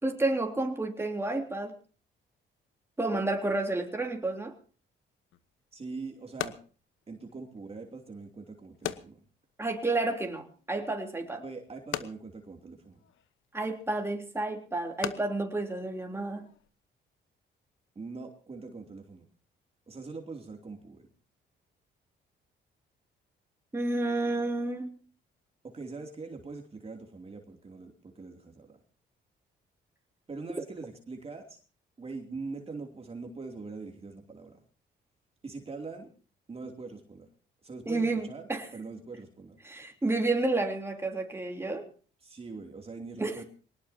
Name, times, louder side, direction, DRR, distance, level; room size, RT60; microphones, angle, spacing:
voice 1, 0.0-1.7 3.0-4.5 9.6-11.4 13.5-16.5 23.7-24.9 37.8-38.7 39.6-41.9 43.2-43.4, right 2 dB, 10° right, 2 dB, 3.4 m, -30 dB
sound 1, 5.3-16.7, left 12 dB, 80° left, 1.1 m, -43 dB
voice 2, 5.7-6.6 7.1-9.2 11.4-13.0 17.9-19.3 19.9-21.1 25.6-28.8 30.3-31.6 32.0-34.6 35.4-36.1 36.5-37.3 37.6-38.4 38.7-39.6 42.2-43.4, right 4 dB, 30° right, 2 dB, 2.9 m, -42 dB
23.0 x 19.0 x 2.8 m, 0.38 s
cardioid pair, 90°, 20 cm